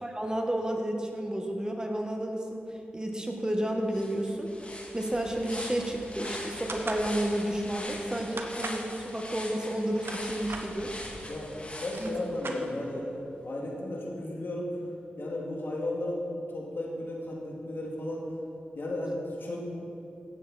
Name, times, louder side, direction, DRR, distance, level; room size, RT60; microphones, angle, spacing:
voice 1, 0.0-2.6 2.9-4.5 4.9-10.9 12.0-12.1, right 1 dB, 20° right, 2 dB, 1.6 m, -31 dB
sound 1, 3.5-3.6 3.9-12.7, left 1 dB, 30° left, 2.3 m, -42 dB
sound 2, 6.7-7.1 8.4-8.9 9.8-10.7 11.5-11.6 11.8-13.0, right 3 dB, 70° right, 1.1 m, -38 dB
voice 2, 11.2-14.7 15.2-18.3 18.7-19.6, left 1 dB, 65° left, -2 dB, 2.6 m, -34 dB
16.5 x 7.6 x 4.4 m, 2.7 s
cardioid pair, 45°, 4 cm